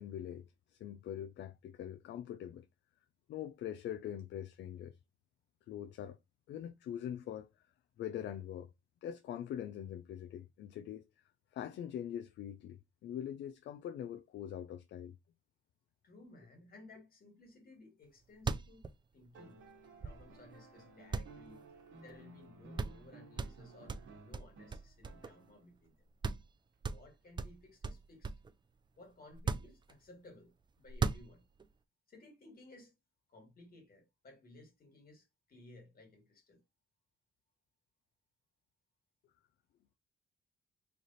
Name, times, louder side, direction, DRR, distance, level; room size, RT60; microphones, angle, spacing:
voice 1, 0.0-2.7 3.3-5.0 5.7-6.2 6.5-7.5 8.0-8.7 9.0-11.0 11.5-15.2, left 10 dB, 65° left, 0.4 m, -43 dB
voice 2, 16.0-19.6 20.0-21.7 22.0-24.0 24.2-25.9 26.8-28.3 29.0-31.4 32.1-32.9 33.3-36.6, left 2 dB, 50° left, 1.9 m, -58 dB
sound 1, 18.0-18.1 18.3-20.5 21.1-22.2 22.4-22.5 22.8-23.1 23.4-25.5 25.9-26.0 26.2-26.5 26.8-28.5 29.3-30.3 30.8-31.7, right 4 dB, 25° right, 0.4 m, -39 dB
sound 2, 19.3-25.8 27.3-27.4, right 3 dB, 75° right, 1.1 m, -56 dB
3.3 x 2.5 x 4.0 m
cardioid pair, 90°, 20 cm